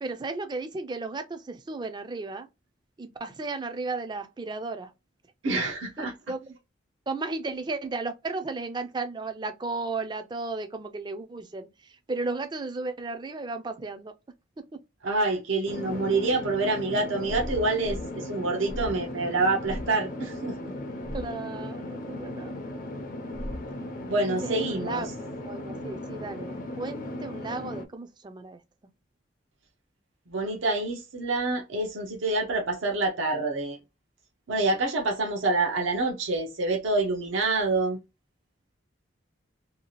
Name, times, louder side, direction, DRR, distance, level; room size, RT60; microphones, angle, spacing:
voice 1, 0.0-2.5 3.0-4.9 6.0-6.6 7.1-14.2 14.6-14.8 21.1-22.6 24.2-25.1 25.4-28.6, right 3 dB, 20° right, 0.3 m, -34 dB
voice 2, 5.4-6.1 15.0-20.6 24.1-25.0 30.3-33.8 34.5-38.0, right 2 dB, 80° right, 0.6 m, -27 dB
sound 1, 15.7-27.9, left 1 dB, 45° left, 0.5 m, -37 dB
sound 2, 17.2-18.1 18.7-19.1 19.6-19.9 21.0-21.3 23.3-23.7, equal, 65° left, 0.8 m, -37 dB
2.7 x 2.3 x 2.9 m
head